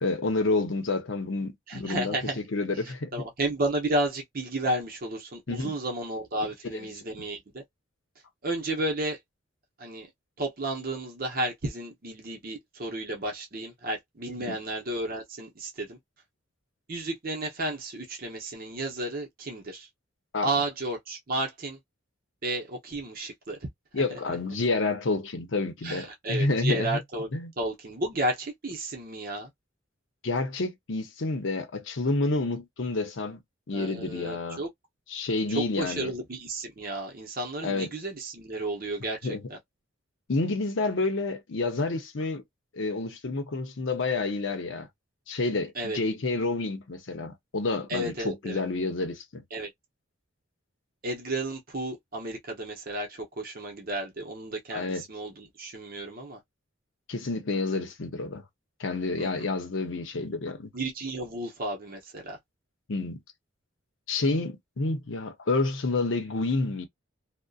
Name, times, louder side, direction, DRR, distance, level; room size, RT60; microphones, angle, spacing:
voice 1, 0.0-2.2 2.5-3.2 5.5-5.7 6.7-6.9 14.4-14.6 20.3-20.5 23.9-27.0 27.3-27.5 30.2-33.4 33.7-34.6 35.1-36.1 37.6-37.9 39.2-39.4 40.3-42.4 42.7-44.9 45.3-49.4 54.7-55.0 57.1-58.4 58.8-60.7 62.9-63.2 64.1-66.9, left 3 dB, 65° left, 0.7 m, -29 dB
voice 2, 1.7-2.4 2.7-7.6 8.4-9.2 9.8-10.1 10.4-16.0 16.9-19.9 20.4-21.8 22.4-23.6 25.8-27.3 27.6-29.5 33.7-34.7 35.5-39.6 45.7-46.0 47.9-48.6 49.5-49.7 51.0-56.4 59.2-59.5 60.7-62.4, right 1 dB, 45° right, 0.7 m, -32 dB
2.6 x 2.1 x 2.3 m
head